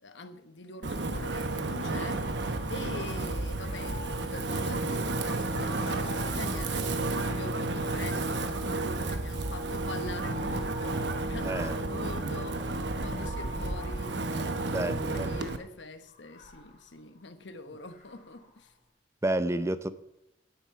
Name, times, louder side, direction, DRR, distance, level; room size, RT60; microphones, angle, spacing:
voice 1, 0.0-12.7 13.0-14.9 15.1-18.7, left 2 dB, 65° left, 1.1 m, -44 dB
Wind, 0.8-15.6, right 2 dB, 60° right, 1.0 m, -32 dB
sound 1, 1.1-7.4, right 1 dB, 40° right, 1.1 m, -48 dB
sound 2, 2.2-3.1 3.5-7.9 8.6-15.3 16.0-18.6, left 1 dB, 45° left, 3.1 m, -49 dB
voice 2, 11.4-11.8 14.7-15.5 19.2-19.9, right 1 dB, 15° right, 0.6 m, -30 dB
10.5 x 8.4 x 8.5 m
head